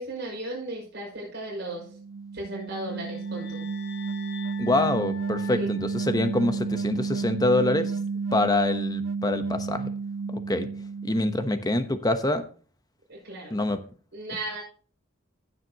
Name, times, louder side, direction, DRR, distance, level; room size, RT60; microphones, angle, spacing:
voice 1, 0.0-2.0 2.3-3.6 5.5-5.7 13.1-13.5 14.1-14.6, right 1 dB, 55° right, -3 dB, 5.5 m, -35 dB
sound 1, 1.8-11.9, right 4 dB, 75° right, 0.4 m, -31 dB
sound 2, 2.6-6.9, left 7 dB, 55° left, 1.1 m, -46 dB
voice 2, 4.6-7.9 8.3-9.9 10.3-10.7 11.0-12.4 13.5-13.8, left 2 dB, 20° left, 9 dB, 1.0 m, -25 dB
15.5 x 7.6 x 3.0 m, 0.41 s
head